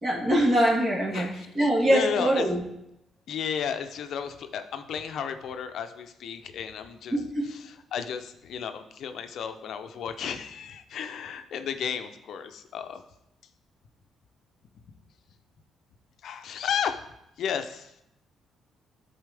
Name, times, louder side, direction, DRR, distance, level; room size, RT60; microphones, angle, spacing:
voice 1, 0.0-2.6 7.1-7.5, right 1 dB, 30° right, -2 dB, 1.7 m, -24 dB
voice 2, 1.1-2.5 3.3-13.0 16.2-17.0 17.4-17.9, left 7 dB, 70° left, 8 dB, 0.5 m, -33 dB
11.5 x 4.1 x 3.4 m, 0.82 s
cardioid pair, 90°, 0 cm